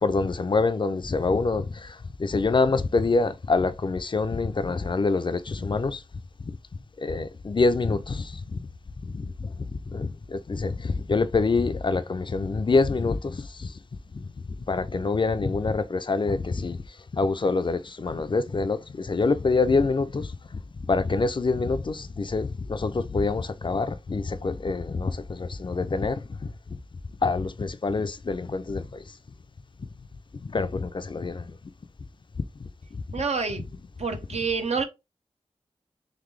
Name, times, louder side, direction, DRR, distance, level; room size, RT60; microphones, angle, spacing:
voice 1, 0.0-1.7 2.2-6.0 7.0-8.3 9.1-9.5 9.9-13.7 14.1-14.2 14.7-16.8 17.1-20.3 20.9-26.2 27.2-28.9 30.4-31.5, left 3 dB, 45° left, 0.4 m, -25 dB
voice 2, 33.1-33.7 34.0-34.8, right 5 dB, 75° right, 0.8 m, -27 dB
4.0 x 3.1 x 3.1 m
wide cardioid pair, 80°, 11 cm